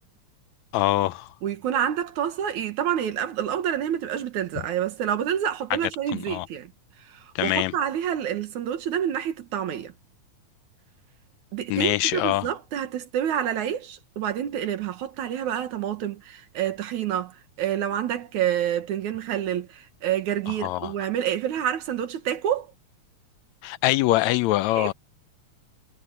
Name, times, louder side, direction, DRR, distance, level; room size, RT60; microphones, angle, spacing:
voice 1, 0.7-1.3 6.1-6.5 7.3-7.7 11.7-12.5 20.5-20.9 23.6-24.9, left 16 dB, 80° left, 1.8 m, -24 dB
voice 2, 1.4-6.7 7.1-9.9 11.5-22.7 24.8-24.9, right 10 dB, 75° right, 2.9 m, -28 dB
omnidirectional pair, 3.4 m